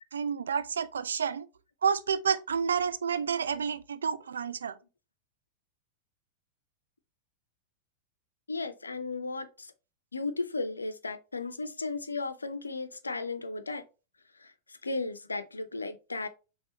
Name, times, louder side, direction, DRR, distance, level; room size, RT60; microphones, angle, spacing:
voice 1, 0.1-1.5 1.8-4.8, right 6 dB, 70° right, 0.3 m, -29 dB
voice 2, 8.5-9.7 10.1-13.8 14.4-16.3, left 3 dB, 80° left, 0.4 m, -35 dB
5.3 x 3.4 x 2.8 m
figure-of-eight pair, 90°, 0 cm